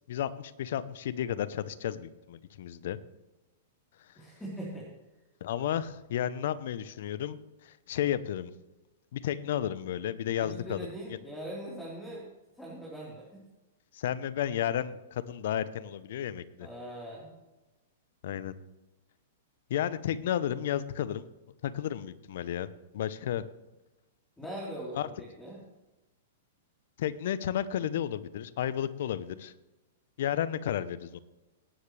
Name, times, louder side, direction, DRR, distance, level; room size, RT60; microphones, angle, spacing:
voice 1, 0.1-3.0 5.4-7.4 7.6-8.5 9.1-10.9 13.9-16.7 18.2-18.5 19.7-21.2 21.6-22.7 22.9-23.5 25.0-25.1 27.0-29.5 30.2-31.2, left 10 dB, 65° left, 16 dB, 0.8 m, -32 dB
voice 2, 4.2-4.9 10.4-12.3 12.5-13.4 16.6-17.3 24.4-25.6, right 1 dB, 10° left, -5 dB, 3.9 m, -41 dB
19.0 x 9.8 x 3.3 m, 1.1 s
hypercardioid pair, 120°, 0 cm